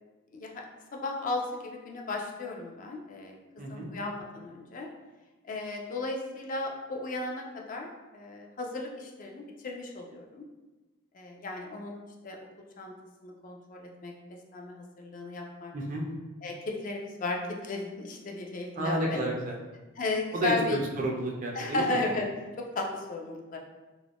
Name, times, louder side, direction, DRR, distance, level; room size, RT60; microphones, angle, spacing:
voice 1, 0.3-0.6 0.9-3.4 3.7-4.9 5.4-7.9 8.1-10.4 11.1-12.4 12.8-12.9 13.2-14.1 14.5-15.7 16.4-19.2 20.0-20.8 21.5-22.3 22.6-23.6, left 2 dB, 40° left, 1 dB, 0.3 m, -35 dB
voice 2, 3.6-3.9 15.7-16.1 18.8-19.6 20.3-22.0, right 1 dB, 40° right, -1 dB, 0.4 m, -31 dB
2.4 x 2.1 x 3.4 m, 1.2 s
head